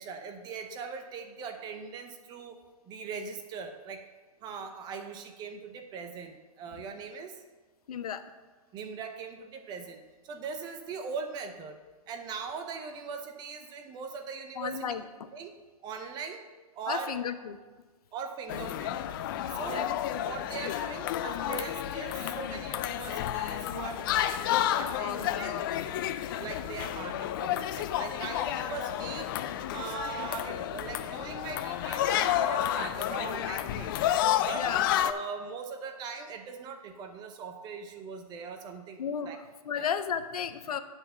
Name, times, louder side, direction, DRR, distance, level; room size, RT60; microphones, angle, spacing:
voice 1, 0.0-2.6 2.9-4.0 4.4-7.4 8.7-11.7 12.1-14.8 15.3-15.5 15.8-16.4 16.7-17.1 18.1-19.0 19.5-19.9 20.2-25.6 26.3-29.3 29.7-34.0 34.4-34.6 35.0-39.4 39.7-39.9, right 5 dB, 20° right, 6 dB, 0.7 m, -40 dB
voice 2, 7.9-8.2 14.6-15.3 16.9-17.6 19.7-19.9 25.1-25.6 25.9-26.2 34.5-34.9 39.0-40.8, left 7 dB, 80° left, 10 dB, 0.7 m, -34 dB
sound 1, 18.5-35.1, left 11 dB, 35° left, 0.4 m, -31 dB
8.1 x 4.2 x 6.8 m, 1.3 s
hypercardioid pair, 145°, 19 cm